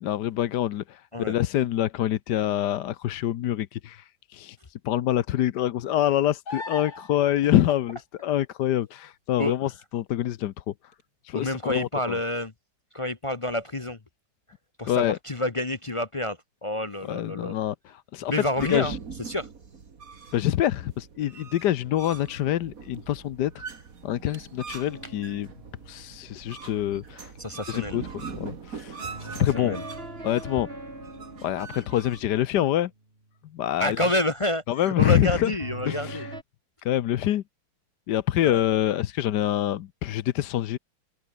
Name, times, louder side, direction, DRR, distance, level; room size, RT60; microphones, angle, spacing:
voice 1, 0.0-10.7 11.2-12.2 14.9-15.2 17.0-19.0 20.3-23.7 24.0-25.5 25.9-27.3 27.7-29.8 30.2-30.7 31.4-32.9 33.5-34.1 34.7-35.5 35.9-36.3 36.8-37.4 38.1-40.8, left 12 dB, 70° left, 1.3 m, -26 dB
sound 1, 6.5-7.4 10.9-11.0, left 3 dB, 55° left, 4.4 m, -36 dB
voice 2, 11.3-12.5 12.9-14.0 14.8-17.6 18.3-18.9 19.3-19.5 27.4-28.0 29.2-29.8 33.8-36.3 38.5-38.6, left 1 dB, 30° left, 0.5 m, -28 dB
sound 2, 18.6-32.2, right 5 dB, 50° right, 2.3 m, -42 dB
sound 3, 24.9-27.2 29.0-32.8 35.6-36.4, right 2 dB, 30° right, 5.4 m, -42 dB
open air
omnidirectional pair, 2.0 m